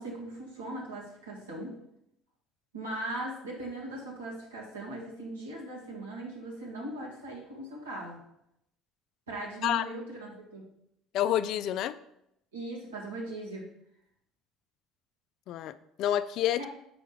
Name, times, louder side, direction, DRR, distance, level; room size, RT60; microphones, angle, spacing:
voice 1, 0.0-1.8 2.7-8.2 9.3-10.6 12.5-13.7 16.6-16.7, right 1 dB, 85° right, -4 dB, 1.8 m, -39 dB
voice 2, 11.1-12.0 15.5-16.6, left 11 dB, 60° left, 14 dB, 0.3 m, -28 dB
6.9 x 5.7 x 3.1 m, 0.78 s
hypercardioid pair, 60°, 0 cm